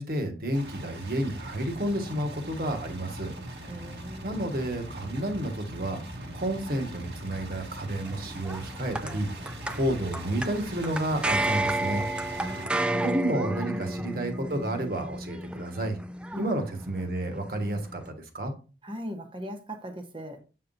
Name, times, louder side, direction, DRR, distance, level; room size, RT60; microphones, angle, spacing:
voice 1, 0.0-3.3 4.2-6.0 6.3-9.3 9.7-12.0 13.0-15.9 16.3-18.5, right 1 dB, 55° right, 1.5 m, -30 dB
sound 1, 0.5-12.7, right 1 dB, 80° right, 1.7 m, -41 dB
voice 2, 3.6-4.4 12.4-13.1 13.4-13.8 16.3-16.5 18.8-20.4, equal, 30° right, 1.1 m, -39 dB
sound 2, 8.0-18.1, right 1 dB, 5° right, 0.3 m, -32 dB
8.1 x 5.8 x 2.7 m
head